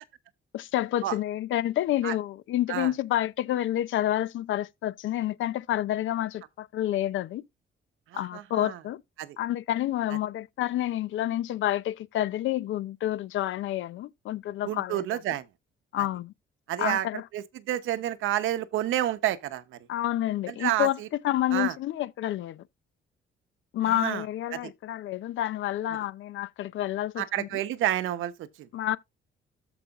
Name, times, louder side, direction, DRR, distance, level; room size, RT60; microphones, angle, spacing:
voice 1, 0.5-7.4 8.1-9.0 9.4-15.2 15.9-16.3 16.8-17.2 19.9-21.0 21.2-22.6 23.7-27.5 28.7-29.0, left 13 dB, 75° left, 0.7 m, -29 dB
voice 2, 8.1-8.8 9.2-9.4 14.6-15.4 16.0-16.1 16.7-17.1 17.3-19.8 20.5-21.1 21.5-21.7 23.9-24.2 24.5-24.7 27.2-28.7, right 13 dB, 85° right, 1.0 m, -29 dB
14.0 x 5.0 x 2.5 m
cardioid pair, 90°, 20 cm